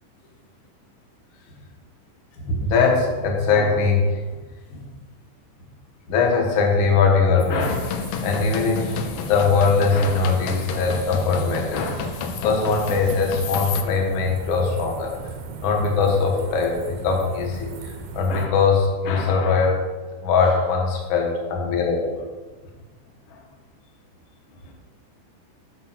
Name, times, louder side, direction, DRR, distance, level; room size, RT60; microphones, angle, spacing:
voice 1, 2.4-4.2 4.7-4.9 6.1-12.1 12.4-15.1 15.6-19.8 20.2-22.2 23.3-23.4, left 4 dB, 60° left, 1 dB, 1.3 m, -21 dB
sound 1, 7.4-18.5, right 4 dB, 75° right, 2.0 m, -36 dB
sound 2, 7.6-13.8, left 7 dB, 80° left, 2.1 m, -31 dB
8.3 x 4.4 x 6.0 m, 1.3 s
omnidirectional pair, 3.9 m